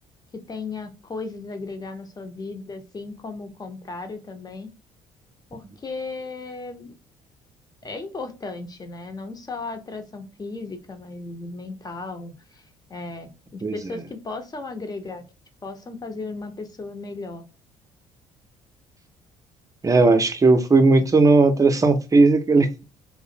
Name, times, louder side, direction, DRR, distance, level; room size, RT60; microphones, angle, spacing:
voice 1, 0.5-4.7 5.5-7.0 7.8-12.6 12.9-15.2 15.6-17.4, left 3 dB, 30° left, 0.7 m, -35 dB
voice 2, 13.6-14.0 19.8-22.8, right 3 dB, 25° right, 0.5 m, -17 dB
2.4 x 2.0 x 2.8 m
hypercardioid pair, 60°, 14 cm